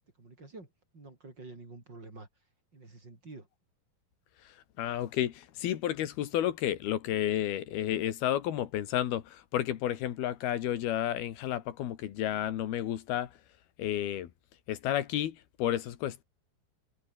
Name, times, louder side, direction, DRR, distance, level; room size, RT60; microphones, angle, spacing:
voice 1, 0.2-0.7 0.9-2.3 2.7-3.5, right 3 dB, 30° right, 5.1 m, -48 dB
voice 2, 4.8-13.3 13.8-14.3 14.7-16.2, left 12 dB, 80° left, 3.5 m, -31 dB
omnidirectional pair, 4.4 m